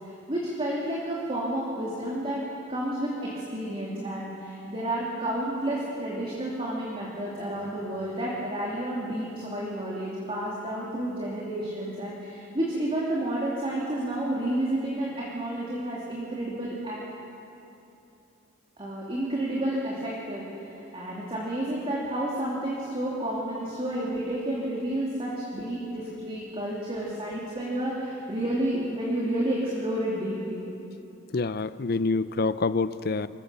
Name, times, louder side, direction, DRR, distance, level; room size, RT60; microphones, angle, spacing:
voice 1, 0.0-2.4 2.7-17.0 18.8-30.6, right 1 dB, 30° right, -5 dB, 2.8 m, -30 dB
voice 2, 31.3-33.3, left 3 dB, 50° left, 15 dB, 0.5 m, -26 dB
25.5 x 16.0 x 6.9 m, 2.8 s
head